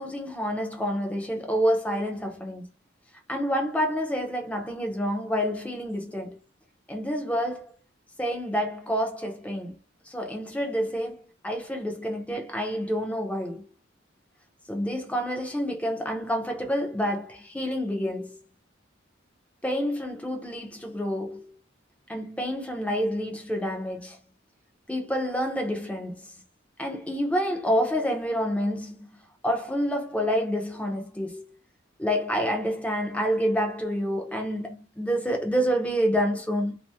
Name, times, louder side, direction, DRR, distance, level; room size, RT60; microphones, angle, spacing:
voice 1, 0.0-2.7 3.3-6.4 6.9-7.7 8.2-9.7 10.1-13.6 14.7-18.4 19.6-21.5 22.1-24.2 24.9-26.4 26.8-29.1 29.4-31.5 32.0-36.8, equal, 5° left, 0.6 m, -28 dB
2.7 x 2.1 x 3.4 m
head